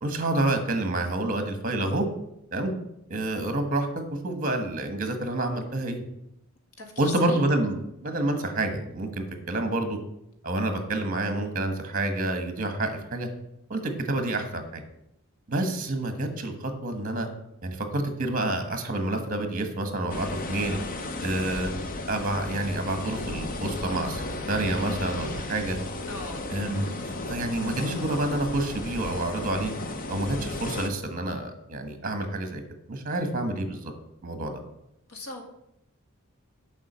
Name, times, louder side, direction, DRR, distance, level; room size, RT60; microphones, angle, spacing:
voice 1, 0.0-2.1 2.5-2.7 3.1-6.0 7.0-10.0 10.4-13.3 13.7-14.8 15.5-17.3 17.6-20.8 21.2-21.7 22.1-24.2 24.5-25.8 26.5-29.7 30.1-32.6 32.9-33.9 34.2-34.6, right 2 dB, 40° right, 7 dB, 1.3 m, -28 dB
voice 2, 6.8-7.4 26.1-26.5 35.1-35.4, left 2 dB, 75° left, 4 dB, 1.7 m, -38 dB
sound 1, 20.1-30.9, left 2 dB, 40° left, 0.7 m, -34 dB
7.4 x 5.0 x 7.3 m, 0.81 s
head